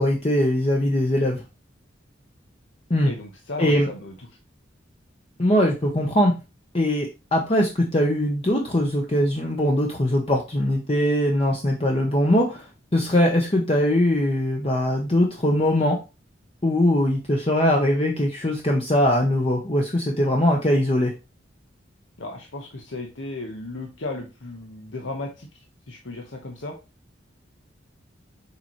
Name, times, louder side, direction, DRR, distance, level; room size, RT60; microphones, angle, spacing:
voice 1, 0.0-1.4 2.9-3.1 3.6-3.9 5.4-6.3 6.7-16.0 16.6-21.1, left 1 dB, 30° left, 0 dB, 0.9 m, -21 dB
voice 2, 3.0-4.1 22.2-26.7, left 2 dB, 80° left, 1 dB, 1.1 m, -35 dB
6.7 x 4.5 x 3.1 m, 0.29 s
head